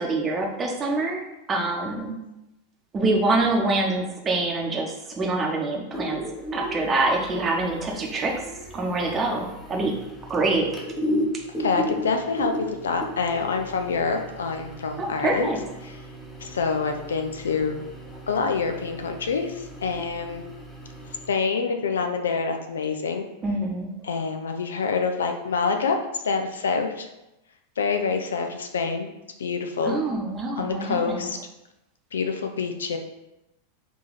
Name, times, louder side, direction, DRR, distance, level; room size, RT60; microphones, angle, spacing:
voice 1, 0.0-2.1 2.9-6.2 6.5-8.3 8.7-9.9 10.3-10.7 15.0-15.6 23.4-23.9 29.8-31.3, right 2 dB, 20° right, 0 dB, 0.9 m, -25 dB
sound 1, 5.9-21.3, equal, 10° left, 1.0 m, -35 dB
voice 2, 11.6-15.5 16.4-17.8 18.3-20.4 21.3-23.3 24.0-27.1 27.8-29.1 29.4-30.0 30.6-31.4 32.1-33.0, left 5 dB, 65° left, 5 dB, 0.5 m, -26 dB
4.7 x 2.9 x 4.0 m, 0.94 s
figure-of-eight pair, 90°, 0 cm